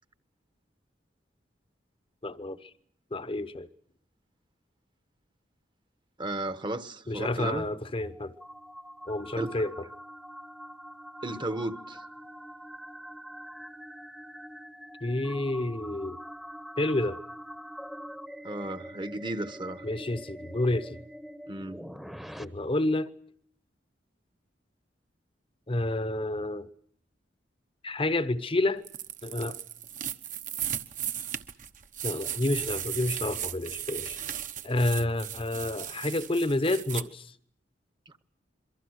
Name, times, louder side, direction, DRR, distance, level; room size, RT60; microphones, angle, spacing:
voice 1, 2.2-2.7 3.1-3.7 7.1-8.3 9.1-9.9 15.0-16.2 16.8-17.2 19.8-21.0 22.4-23.1 25.7-26.7 27.8-28.8 29.2-29.6 32.0-34.2 34.6-37.3, left 2 dB, 30° left, 1.0 m, -29 dB
voice 2, 6.2-7.7 9.4-9.5 11.2-12.1 18.4-19.8 21.5-21.8 38.1-38.2, right 2 dB, 25° right, 1.1 m, -34 dB
sound 1, 7.4-22.4, equal, ahead, 1.1 m, -44 dB
sound 2, 28.8-37.0, right 10 dB, 45° right, 1.1 m, -36 dB
27.5 x 23.5 x 6.5 m
head